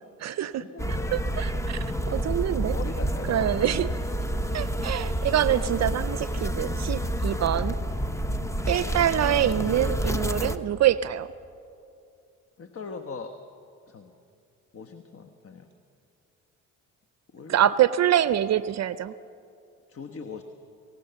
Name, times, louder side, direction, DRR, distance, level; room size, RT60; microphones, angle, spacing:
voice 1, 0.0-0.6 1.1-2.8 3.3-3.9 4.5-7.8 8.7-11.3 17.5-19.1, right 11 dB, 55° right, 15 dB, 0.6 m, -25 dB
voice 2, 0.5-1.1 2.6-4.0 8.2-8.6 12.6-13.4 13.9-14.2 14.7-15.7 17.3-17.7 19.9-20.4, left 4 dB, 45° left, 7 dB, 1.3 m, -41 dB
sound 1, 0.8-10.6, equal, 10° left, 1.0 m, -29 dB
24.5 x 17.0 x 6.9 m, 2.5 s
supercardioid pair, 70°, 32 cm